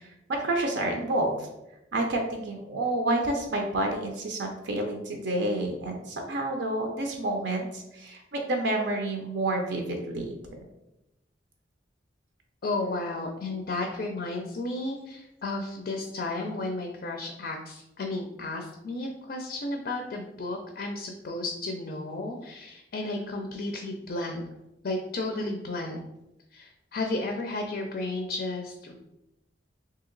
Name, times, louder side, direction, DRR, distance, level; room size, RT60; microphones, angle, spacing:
voice 1, 0.3-1.3 1.9-10.3, right 1 dB, 70° right, 2 dB, 0.5 m, -29 dB
voice 2, 12.6-24.4 24.8-26.0 26.5-28.9, left 2 dB, 50° left, 3 dB, 0.4 m, -33 dB
2.9 x 2.8 x 3.8 m, 0.89 s
head